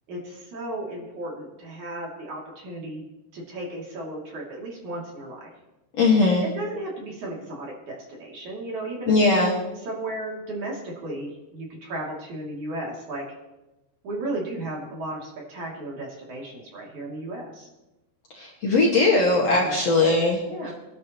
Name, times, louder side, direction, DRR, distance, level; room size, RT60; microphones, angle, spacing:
voice 1, 0.1-3.0 3.3-5.5 6.4-9.1 9.9-13.2 14.0-17.7 19.5-19.8 20.5-20.7, right 1 dB, 50° right, -3 dB, 3.9 m, -34 dB
voice 2, 5.9-6.5 9.1-9.6 18.3-20.7, left 3 dB, 50° left, -4 dB, 2.3 m, -20 dB
24.5 x 11.5 x 3.0 m, 1.0 s
omnidirectional pair, 4.9 m